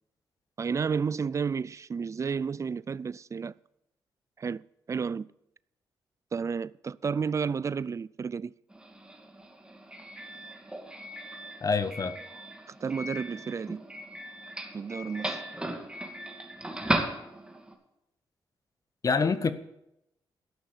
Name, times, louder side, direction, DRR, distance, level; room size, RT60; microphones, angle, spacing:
voice 1, 0.6-3.5 4.4-5.3 6.3-8.5 12.7-13.8 14.7-15.4, right 5 dB, 35° right, 0.4 m, -32 dB
Doorbell, 8.7-17.7, right 1 dB, 10° right, 2.4 m, -37 dB
voice 2, 11.6-12.2 19.0-19.5, left 5 dB, 40° left, 1.0 m, -26 dB
13.0 x 6.2 x 9.8 m
cardioid pair, 75°, 9 cm